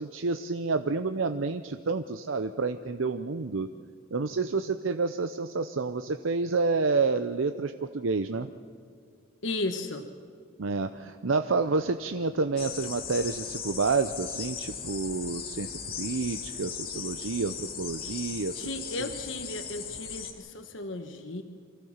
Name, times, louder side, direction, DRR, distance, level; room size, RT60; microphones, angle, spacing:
voice 1, 0.0-3.7 4.1-8.5 10.6-18.6 19.0-19.1, right 4 dB, 85° right, 9 dB, 0.7 m, -29 dB
voice 2, 9.4-10.1 18.5-21.4, left 2 dB, 70° left, 7 dB, 1.3 m, -35 dB
sound 1, 12.6-20.3, left 7 dB, 50° left, 2.6 m, -38 dB
25.0 x 15.5 x 7.3 m, 2.1 s
head